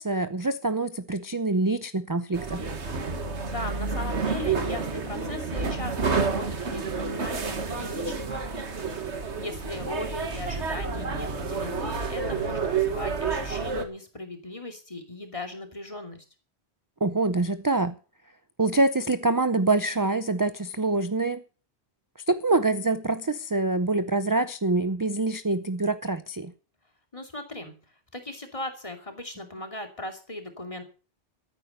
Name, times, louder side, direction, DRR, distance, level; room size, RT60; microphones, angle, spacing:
voice 1, 0.0-2.6 17.0-17.9 18.6-21.4 22.3-26.5, right 2 dB, 20° right, 0.6 m, -25 dB
sound 1, 2.3-13.8, right 4 dB, 90° right, 2.0 m, -29 dB
voice 2, 3.5-16.2 27.1-30.8, left 1 dB, 30° left, 2.7 m, -38 dB
14.0 x 9.3 x 6.7 m
omnidirectional pair, 1.1 m